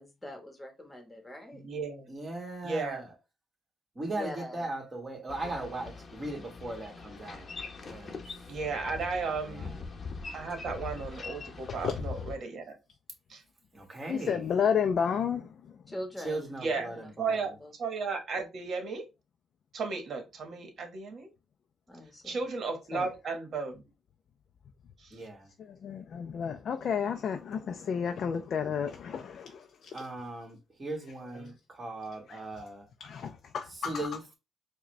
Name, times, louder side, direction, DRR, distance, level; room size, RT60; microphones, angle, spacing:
voice 1, 0.0-1.6 4.1-4.7 5.4-5.7 15.9-17.7 21.9-22.4, left 1 dB, 15° left, 1.2 m, -43 dB
voice 2, 1.5-2.1 2.6-3.0 8.5-9.8 10.3-12.8 13.3-13.4 16.6-16.9 17.2-17.5 17.8-19.0 19.7-21.3 22.2-23.8 25.0-25.2 31.3-31.5, right 4 dB, 55° right, 1.2 m, -34 dB
voice 3, 2.1-3.2 4.0-7.5 7.9-8.2 9.4-9.9 13.7-14.5 16.2-17.5 25.1-25.5 29.9-32.9 33.7-34.3, right 2 dB, 30° right, 1.7 m, -38 dB
Boat Water vehicle, 5.3-12.4, left 4 dB, 40° left, 0.8 m, -42 dB
voice 4, 14.1-15.5 22.9-23.1 25.6-29.9 32.3-32.4 33.0-34.1, left 7 dB, 60° left, 0.4 m, -31 dB
4.7 x 2.2 x 3.1 m
cardioid pair, 90°, 0 cm